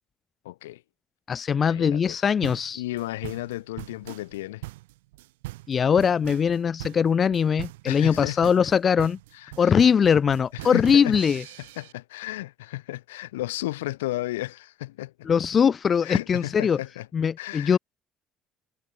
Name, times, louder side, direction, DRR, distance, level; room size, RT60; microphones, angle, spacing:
voice 1, 0.5-0.8 1.5-2.2 2.8-4.6 7.9-8.4 9.4-9.8 10.6-11.1 11.8-15.1 16.0-17.1 17.4-17.8, left 17 dB, 80° left, 1.9 m, -33 dB
voice 2, 1.3-2.8 5.7-9.2 9.6-11.4 15.2-16.8 17.1-17.8, left 7 dB, 40° left, 1.1 m, -21 dB
sound 1, 2.4-11.9, right 19 dB, 75° right, 2.9 m, -40 dB
hypercardioid pair, 55°, 0 cm